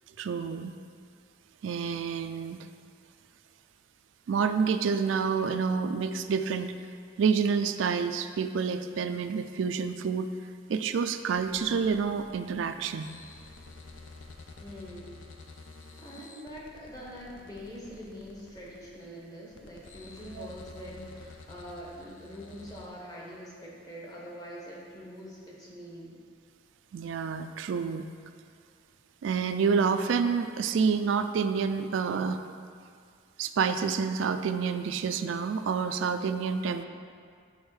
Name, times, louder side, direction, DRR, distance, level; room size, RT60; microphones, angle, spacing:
voice 1, 0.2-0.7 1.6-2.7 4.3-6.7 7.2-10.3 10.7-13.1 20.4-20.5 26.9-28.1 29.2-32.5 33.4-36.8, right 6 dB, 85° right, 9 dB, 0.3 m, -28 dB
sound 1, 11.3-22.9, left 3 dB, 80° left, 0.6 m, -50 dB
voice 2, 14.6-15.1 16.0-26.2, equal, 20° left, -5 dB, 1.2 m, -44 dB
6.3 x 5.0 x 4.8 m, 2.2 s
head